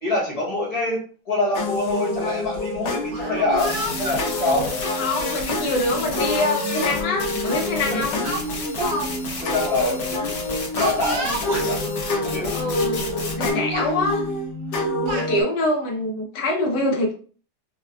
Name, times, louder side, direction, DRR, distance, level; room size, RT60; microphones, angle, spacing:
voice 1, 0.0-4.7 7.9-8.0 9.4-10.2 10.7-11.8 12.2-12.6, left 2 dB, 25° left, -5 dB, 1.1 m, -25 dB
sound 1, 1.5-15.4, left 2 dB, 90° left, 1.4 m, -27 dB
Speech, 3.1-4.2 5.1-5.3 6.6-6.7 7.1-7.3 8.2-9.1 9.3-9.5 10.8-11.7 12.6-12.7 13.1-13.4 13.7-14.0 14.7-15.3, right 1 dB, 60° right, 1.1 m, -30 dB
sound 2, 3.6-13.5, left 3 dB, 55° left, 0.7 m, -32 dB
voice 2, 5.0-8.2 12.5-13.1 13.3-14.2 15.0-17.1, left 1 dB, 75° left, -1 dB, 1.6 m, -24 dB
4.5 x 2.2 x 2.3 m, 0.39 s
omnidirectional pair, 1.9 m